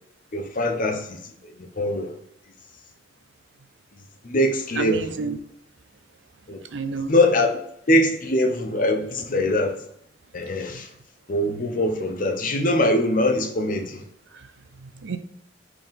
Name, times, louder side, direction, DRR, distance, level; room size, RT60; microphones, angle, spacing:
voice 1, 0.3-2.1 4.2-5.2 6.5-6.6 7.1-7.6 7.9-9.8 10.3-10.9 11.3-14.0, left 1 dB, 50° left, 0.7 m, -23 dB
voice 2, 4.8-5.4 6.7-7.1 10.7-10.8 14.3-14.5 14.8-15.2, right 4 dB, 80° right, 0.5 m, -30 dB
4.8 x 3.8 x 5.1 m
head